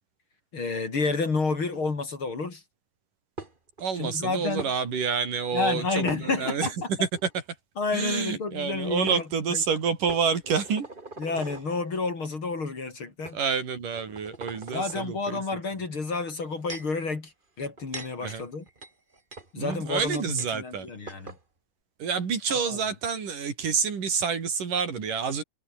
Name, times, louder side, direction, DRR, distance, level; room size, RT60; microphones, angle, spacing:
voice 1, 0.5-2.6 4.0-4.7 5.5-6.9 7.8-9.6 11.2-13.4 14.7-17.3 17.6-18.6 19.5-21.3 22.5-22.8, left 4 dB, 40° left, 4.3 m, -30 dB
sound 1, 3.4-3.8 4.6-4.7 6.1-6.7 7.2-7.3 8.6-8.7 9.1-9.2 10.1-11.7 12.5-12.6 13.2-13.4 13.9-15.1 16.2-17.0 17.6-20.5 20.8-20.9 21.1-21.4, right 2 dB, 15° right, 2.7 m, -42 dB
voice 2, 3.8-6.7 7.0-7.1 7.9-10.9 13.3-15.4 18.2-18.4 19.6-20.9 22.0-25.4, right 6 dB, 80° right, 5.5 m, -28 dB
omnidirectional pair, 3.7 m